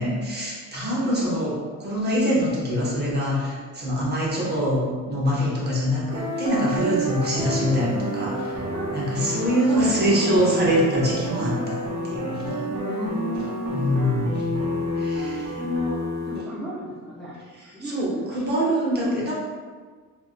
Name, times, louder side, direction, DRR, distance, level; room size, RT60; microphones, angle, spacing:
voice 1, 0.0-8.6 8.9-11.8 12.0-12.6 13.7-14.6 14.9-15.6 17.5-19.3, equal, 30° right, -5 dB, 0.8 m, -24 dB
sound 1, 6.1-16.4, equal, 85° right, 0.8 m, -29 dB
voice 2, 9.5-10.5 12.7-13.8 15.6-16.0 16.2-17.4 17.7-18.3 19.0-19.1, left 1 dB, ahead, -9 dB, 0.4 m, -32 dB
3.1 x 2.6 x 2.3 m, 1.5 s
cardioid pair, 155°, 33 cm